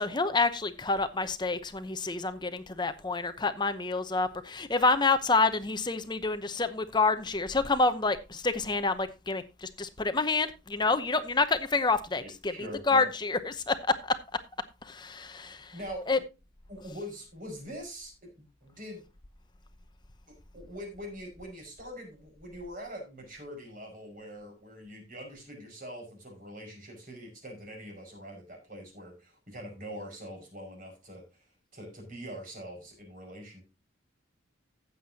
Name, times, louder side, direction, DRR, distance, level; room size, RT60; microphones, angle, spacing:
voice 1, 0.0-14.2 14.8-15.7 16.1-16.2, left 3 dB, 20° left, 0.8 m, -28 dB
voice 2, 12.2-13.1 15.7-16.1 16.7-18.3 18.6-19.0 20.3-31.2 31.7-33.6, equal, 45° right, 5.6 m, -43 dB
15.5 x 8.0 x 2.8 m
head